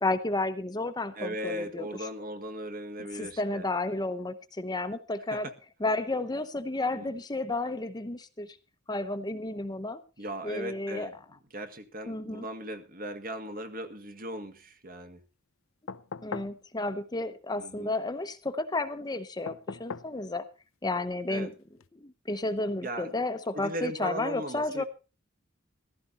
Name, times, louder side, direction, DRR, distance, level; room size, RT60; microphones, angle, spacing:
voice 1, 0.0-1.9 3.1-5.5 5.8-8.6 8.9-10.0 10.4-11.1 12.1-12.4 16.2-20.4 20.8-21.5 22.0-24.8, left 2 dB, 20° left, 0.9 m, -32 dB
voice 2, 1.1-3.6 5.3-5.5 6.9-7.1 10.2-11.2 11.5-15.2 17.6-17.9 21.3-21.5 22.8-23.1 23.5-24.8, right 1 dB, 45° right, 1.9 m, -38 dB
sound 1, 15.9-16.6 19.5-20.2 21.8-21.9, left 5 dB, 80° left, 0.7 m, -39 dB
15.5 x 14.0 x 4.2 m
head